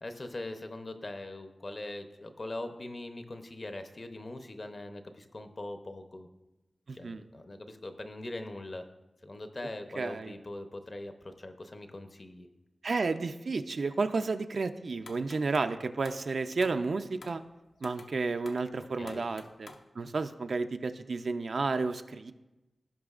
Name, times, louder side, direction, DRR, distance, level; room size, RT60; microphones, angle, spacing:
voice 1, 0.0-6.3 6.9-8.9 9.2-12.5 19.0-19.3, left 2 dB, 40° left, 7 dB, 0.6 m, -41 dB
voice 2, 6.9-7.2 10.0-10.3 12.8-17.4 17.8-19.7 20.0-22.3, right 3 dB, 60° right, 8 dB, 0.4 m, -32 dB
sound 1, 15.1-15.8 16.0-16.3 16.6-16.8 17.2-17.4 17.8-18.1 18.5-18.7 19.1-19.8, left 3 dB, 75° left, 0.7 m, -50 dB
16.5 x 5.9 x 2.4 m, 1.0 s
wide cardioid pair, 120°, 0 cm